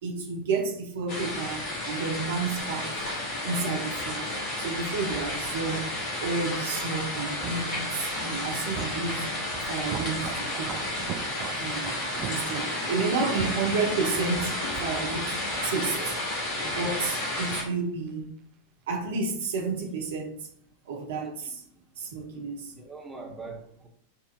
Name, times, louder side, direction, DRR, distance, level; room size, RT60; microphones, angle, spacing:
voice 1, 0.0-3.0 3.4-4.2 4.6-5.9 6.2-9.3 9.6-10.9 11.6-16.1 16.6-18.3 18.9-20.5 20.9-21.6 22.0-22.7, right 4 dB, 60° right, 0.9 m, -31 dB
sound 1, 1.1-17.6, left 1 dB, 40° left, 1.3 m, -32 dB
sound 2, 3.6-17.4 17.6-17.8, right 9 dB, 35° right, 0.3 m, -42 dB
voice 2, 22.7-23.9, right 3 dB, 5° right, 1.1 m, -42 dB
6.5 x 2.7 x 2.5 m
figure-of-eight pair, 90°, 0 cm